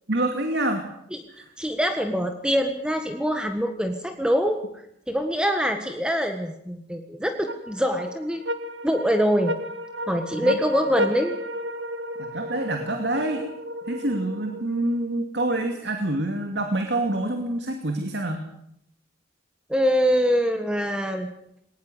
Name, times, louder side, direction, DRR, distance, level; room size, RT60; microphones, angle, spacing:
voice 1, 0.1-0.9 1.3-1.5 10.3-10.6 12.2-13.5 13.9-18.5, right 1 dB, 65° right, 4 dB, 2.6 m, -27 dB
voice 2, 1.6-4.6 5.1-8.4 8.8-9.5 10.1-11.3 19.7-21.3, equal, 5° right, 6 dB, 1.6 m, -24 dB
sound 1, 7.5-15.0, equal, 90° right, 1.6 m, -33 dB
20.5 x 19.0 x 8.1 m, 0.74 s
head